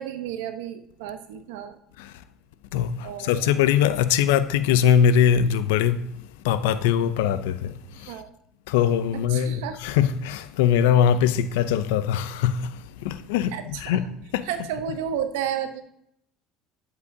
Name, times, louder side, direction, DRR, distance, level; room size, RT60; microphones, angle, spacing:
voice 1, 0.0-1.8 3.0-3.5 7.9-8.3 9.1-9.8 13.5-14.0 14.4-15.8, right 9 dB, 90° right, 0.8 m, -32 dB
voice 2, 2.7-6.0 6.4-8.1 8.7-12.7 13.0-14.1 14.3-14.5, left 9 dB, 90° left, 0.5 m, -22 dB
10.5 x 7.9 x 2.7 m
supercardioid pair, 105°, 0 cm